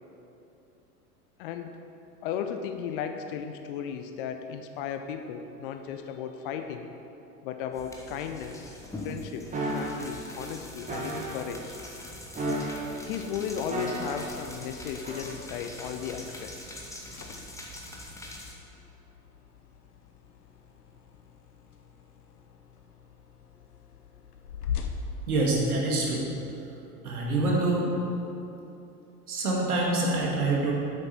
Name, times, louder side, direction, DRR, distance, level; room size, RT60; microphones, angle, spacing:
voice 1, 1.4-1.8 2.2-6.9 7.4-8.7 9.0-9.5 9.7-11.8 13.0-16.5, left 8 dB, 35° left, 7 dB, 0.5 m, -35 dB
sound 1, 7.7-18.5, left 1 dB, 5° left, 1.1 m, -43 dB
sound 2, 9.5-10.0 10.9-11.4 12.3-13.0 13.7-14.3 15.0-15.2, right 2 dB, 15° right, 1.8 m, -32 dB
sound 3, 17.1-26.2, left 6 dB, 70° left, 0.9 m, -41 dB
voice 2, 25.3-26.2 27.0-27.9 29.3-30.7, right 2 dB, 70° right, -2 dB, 2.1 m, -26 dB
9.6 x 8.0 x 4.4 m, 2.8 s
figure-of-eight pair, 85°, 46 cm